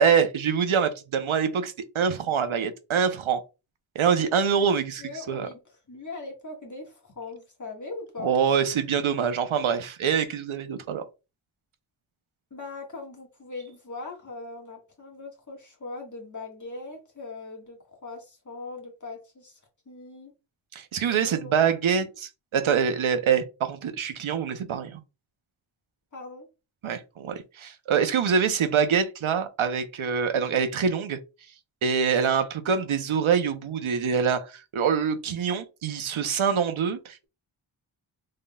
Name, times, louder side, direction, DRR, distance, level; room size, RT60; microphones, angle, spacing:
voice 1, 0.0-3.4 3.9-5.5 8.2-11.0 20.7-25.0 26.8-31.2 31.8-37.3, right 7 dB, 80° right, 0.7 m, -25 dB
voice 2, 5.0-5.6 5.9-8.3 12.5-19.6 19.8-20.3 21.2-21.5 21.9-22.0 26.1-26.5, left 3 dB, 40° left, 1.6 m, -40 dB
3.8 x 3.7 x 2.2 m
wide cardioid pair, 75°, 48 cm